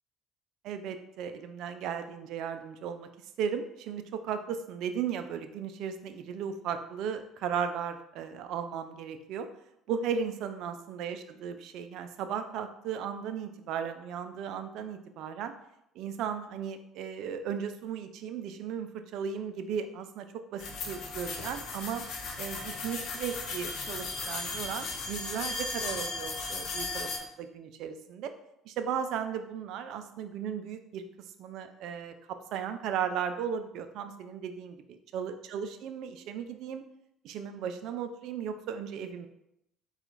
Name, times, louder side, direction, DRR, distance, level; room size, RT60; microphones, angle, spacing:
voice 1, 0.6-3.1 3.4-9.5 9.9-15.5 16.0-22.0 22.4-27.1 27.4-28.3 28.7-31.0 31.4-34.7 35.1-36.8 37.2-39.3, right 7 dB, 65° right, 8 dB, 0.4 m, -36 dB
sound 1, 20.6-27.2, left 3 dB, 60° left, 0.7 m, -36 dB
4.2 x 2.4 x 3.9 m, 0.81 s
hypercardioid pair, 60°, 0 cm